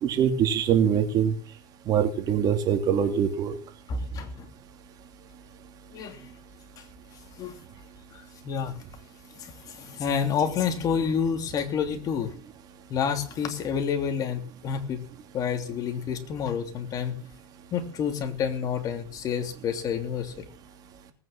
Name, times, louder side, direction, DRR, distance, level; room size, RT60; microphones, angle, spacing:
voice 1, 0.0-1.3 1.9-3.5, right 8 dB, 45° right, 6 dB, 2.8 m, -23 dB
voice 2, 3.9-4.5 5.9-6.2 7.4-7.6 8.1-8.7 9.3-12.3 12.9-15.0 15.3-17.2 17.7-20.4, left 7 dB, 40° left, 6 dB, 3.0 m, -29 dB
19.0 x 9.3 x 7.3 m, 0.43 s
supercardioid pair, 125°, 9 cm